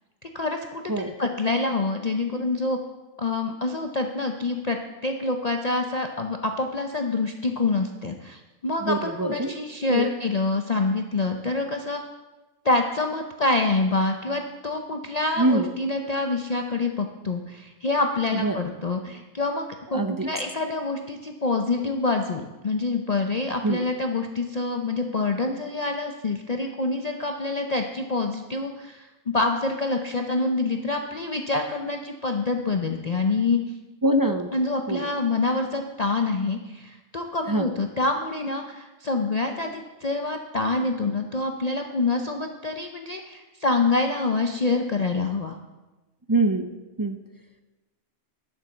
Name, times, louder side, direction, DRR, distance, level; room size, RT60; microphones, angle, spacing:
voice 1, 0.3-2.8 3.2-4.8 5.0-12.0 12.6-33.6 34.5-45.6, left 3 dB, 40° left, 4 dB, 0.6 m, -26 dB
voice 2, 8.8-9.5 9.9-10.1 15.4-15.7 18.3-18.6 19.9-20.3 23.6-23.8 34.0-34.5 34.9-35.1 37.5-37.7 46.3-46.7 47.0-47.2, right 2 dB, 35° right, 6 dB, 0.3 m, -24 dB
11.5 x 7.0 x 7.1 m, 1.1 s
omnidirectional pair, 1.3 m